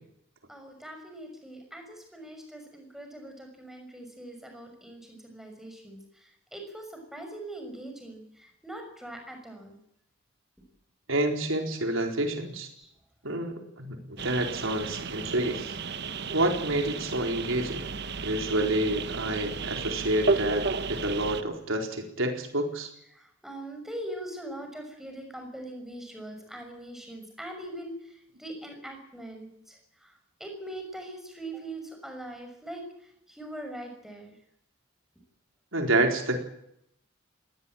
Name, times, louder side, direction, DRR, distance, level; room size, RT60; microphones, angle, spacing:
voice 1, 0.5-9.8 12.8-12.9 13.5-13.6 23.1-34.4, right 1 dB, ahead, 4 dB, 6.2 m, -42 dB
voice 2, 11.1-12.7 13.2-15.8 16.3-17.8 18.2-22.9 35.7-36.4, right 1 dB, 85° right, 4 dB, 4.4 m, -28 dB
sound 1, 14.2-21.4, right 4 dB, 55° right, 1.3 m, -33 dB
21.5 x 18.0 x 8.9 m, 0.75 s
head